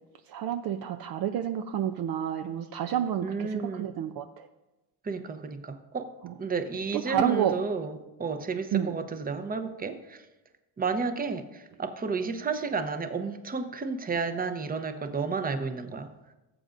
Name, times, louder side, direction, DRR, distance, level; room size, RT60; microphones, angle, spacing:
voice 1, 0.3-4.5 6.9-7.6 8.7-8.9, right 10 dB, 50° right, 8 dB, 0.5 m, -29 dB
voice 2, 3.2-3.9 5.0-6.1 6.4-10.3 10.8-16.1, right 4 dB, 20° right, 9 dB, 0.7 m, -32 dB
17.0 x 7.5 x 2.5 m, 1.0 s
cardioid pair, 105°, 47 cm